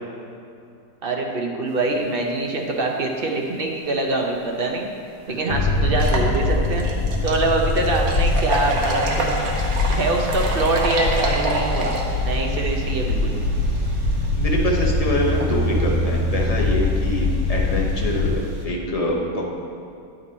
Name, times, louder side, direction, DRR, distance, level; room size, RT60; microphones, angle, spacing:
voice 1, 1.0-4.9 5.3-6.9 7.2-9.4 9.9-12.0 12.2-13.3, right 2 dB, 50° right, 1 dB, 0.8 m, -24 dB
sound 1, 4.6-4.7 5.2-5.3 5.9-18.6, right 2 dB, 85° right, 1.4 m, -30 dB
sound 2, 5.5-18.4, left 2 dB, 90° left, 1.1 m, -23 dB
voice 2, 14.3-19.4, left 1 dB, 30° left, -2 dB, 0.9 m, -25 dB
9.6 x 5.2 x 4.2 m, 2.5 s
omnidirectional pair, 1.5 m